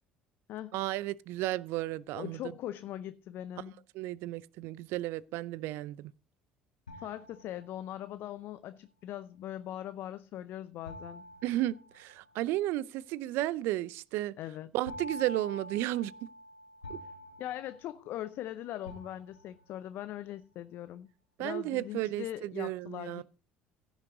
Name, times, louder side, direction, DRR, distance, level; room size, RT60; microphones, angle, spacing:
voice 1, 0.7-2.4 3.9-6.1 11.4-14.4 14.7-16.3 16.9-17.0 21.4-23.2, right 15 dB, 60° right, 0.5 m, -33 dB
voice 2, 2.1-3.8 7.0-11.2 14.4-14.7 17.0-17.1 17.4-21.1 21.4-23.2, left 12 dB, 55° left, 0.6 m, -41 dB
sound 1, 6.9-8.1 10.9-12.5 14.9-18.4 18.9-19.8, left 1 dB, 90° left, 1.2 m, -47 dB
16.0 x 6.3 x 3.9 m
hypercardioid pair, 60°, 4 cm